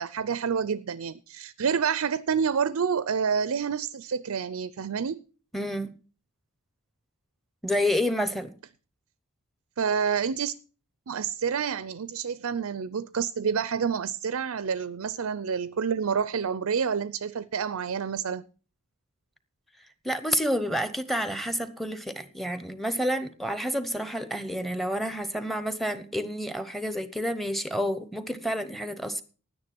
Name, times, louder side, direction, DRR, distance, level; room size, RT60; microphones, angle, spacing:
voice 1, 0.0-5.2 9.8-10.6 11.1-18.4, right 6 dB, 85° right, 0.5 m, -28 dB
voice 2, 5.5-5.9 7.6-8.6 20.0-29.2, equal, ahead, 0.9 m, -29 dB
10.5 x 9.6 x 6.0 m
head